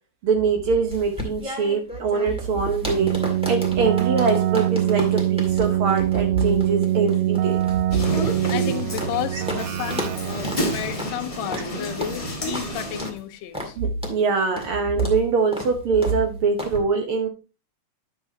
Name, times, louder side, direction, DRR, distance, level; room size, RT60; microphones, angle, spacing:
voice 1, 0.2-3.1 3.5-7.6 7.9-8.0 9.3-9.4 13.8-17.3, right 4 dB, 65° right, 1.4 m, -23 dB
sound 1, 0.9-9.2 9.5-9.6 9.9-10.2 10.4-10.6 11.0-11.2 11.5-11.7 12.0-12.2 12.5-12.7 13.0-13.2 13.5-13.7 14.0-14.2 14.6-14.7 15.0-15.2 15.5-15.7 16.0-16.2 16.6-16.8, left 1 dB, 5° right, 1.3 m, -33 dB
Keyboard (musical), 3.0-11.1, right 13 dB, 80° right, 1.8 m, -24 dB
sound 2, 7.9-13.1, equal, 45° left, 0.4 m, -30 dB
voice 2, 8.5-13.8, left 12 dB, 75° left, 1.9 m, -32 dB
10.0 x 6.9 x 2.7 m
omnidirectional pair, 3.4 m